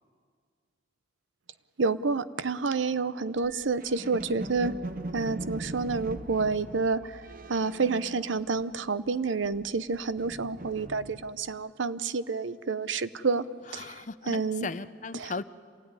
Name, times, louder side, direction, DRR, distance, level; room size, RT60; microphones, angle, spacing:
voice 1, 1.8-4.7 5.1-13.5 13.7-14.7 15.1-15.3, right 4 dB, 80° right, 15 dB, 0.7 m, -29 dB
sound 1, 3.4-9.0 9.3-11.5, right 2 dB, 45° right, 0.8 m, -41 dB
voice 2, 13.8-15.4, left 4 dB, 40° left, 14 dB, 0.6 m, -37 dB
27.0 x 16.5 x 9.7 m, 2.1 s
head